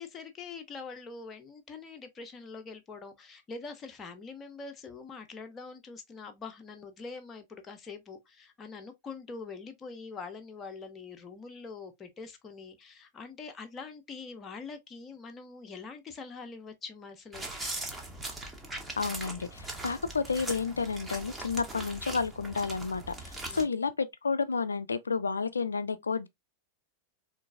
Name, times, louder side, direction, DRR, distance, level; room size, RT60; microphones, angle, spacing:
voice 1, 0.0-17.7 23.4-23.7, left 4 dB, 20° left, 0.6 m, -44 dB
sound 1, 17.3-23.6, right 2 dB, 10° right, 0.8 m, -40 dB
voice 2, 19.0-26.3, left 5 dB, 75° left, 0.3 m, -31 dB
3.8 x 2.5 x 2.2 m
figure-of-eight pair, 90°, 0 cm